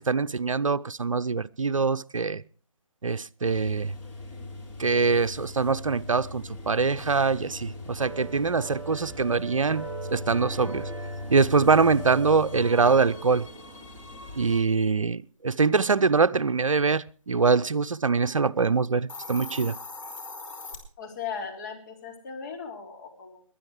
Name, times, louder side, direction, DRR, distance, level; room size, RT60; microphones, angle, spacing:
voice 1, 0.0-2.4 3.0-3.9 4.8-10.9 11.3-13.5 14.4-19.8, right 4 dB, 70° right, 0.7 m, -24 dB
sound 1, 3.4-14.6, left 2 dB, 10° left, 2.9 m, -40 dB
sound 2, 8.0-13.8, right 4 dB, 5° right, 1.2 m, -41 dB
Hiss, 18.9-20.8, left 3 dB, 65° left, 4.9 m, -39 dB
voice 2, 21.0-23.4, left 6 dB, 35° left, 4.1 m, -37 dB
22.0 x 10.0 x 4.8 m
figure-of-eight pair, 150°, 18 cm